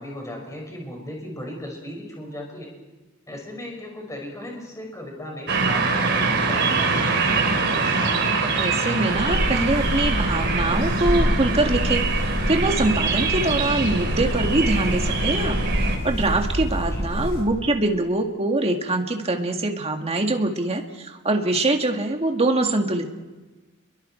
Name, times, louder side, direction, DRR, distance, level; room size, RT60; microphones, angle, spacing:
voice 1, 0.0-2.7 3.3-7.7 16.8-17.4, left 1 dB, 15° left, 0 dB, 5.7 m, -36 dB
sound 1, 5.5-16.0, right 4 dB, 55° right, 3.7 m, -24 dB
sound 2, 6.8-15.5, left 1 dB, 85° left, 3.5 m, -40 dB
voice 2, 8.4-12.0 12.5-15.6 16.0-23.1, right 2 dB, 30° right, 3 dB, 2.0 m, -23 dB
sound 3, 9.1-17.4, equal, 55° left, 5.8 m, -26 dB
29.5 x 22.5 x 4.5 m, 1.2 s
head